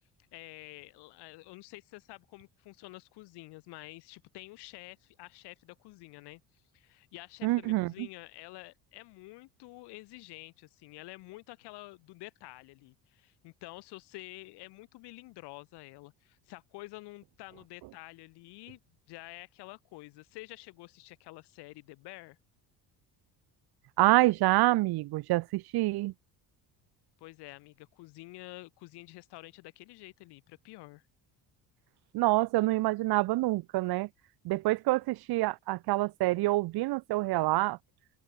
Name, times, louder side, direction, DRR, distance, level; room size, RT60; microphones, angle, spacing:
voice 1, 0.3-18.8 19.1-22.4 27.2-31.0, left 21 dB, 90° left, 6.8 m, -49 dB
voice 2, 7.4-7.9 24.0-26.1 32.1-34.1 34.4-37.8, right 19 dB, 70° right, 1.3 m, -27 dB
cardioid pair, 135°, 39 cm